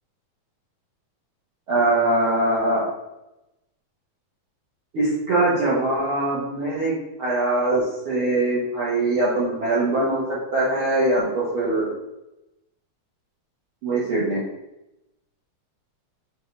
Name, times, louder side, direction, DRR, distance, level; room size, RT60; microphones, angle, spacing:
voice 1, 1.7-2.8 4.9-6.9 7.2-7.8 8.0-11.9 13.8-14.4, right 2 dB, 60° right, -8 dB, 1.4 m, -22 dB
7.2 x 3.9 x 3.3 m, 0.92 s
omnidirectional pair, 4.4 m